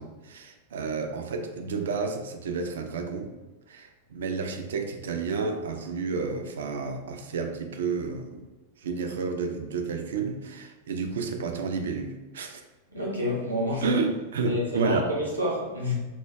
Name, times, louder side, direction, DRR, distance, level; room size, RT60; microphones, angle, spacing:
voice 1, 0.0-3.3 3.7-8.4 8.8-12.6 13.8-15.1, right 4 dB, 60° right, 5 dB, 0.3 m, -31 dB
voice 2, 12.9-13.9 14.4-15.9, left 1 dB, 80° right, -3 dB, 0.8 m, -28 dB
2.2 x 2.1 x 3.3 m, 1.1 s
figure-of-eight pair, 90°, 0 cm